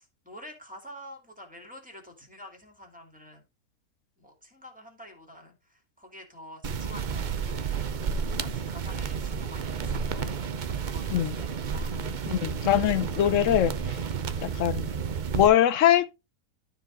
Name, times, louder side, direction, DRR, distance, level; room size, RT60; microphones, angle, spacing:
voice 1, 0.0-3.4 4.2-7.8 8.4-10.5 10.8-12.0, equal, 5° right, 2.6 m, -48 dB
sound 1, 6.6-15.5, right 6 dB, 55° right, 0.5 m, -31 dB
voice 2, 12.3-13.7 14.4-14.9 15.3-16.2, left 11 dB, 65° left, 0.9 m, -22 dB
12.0 x 4.7 x 3.9 m
omnidirectional pair, 1.6 m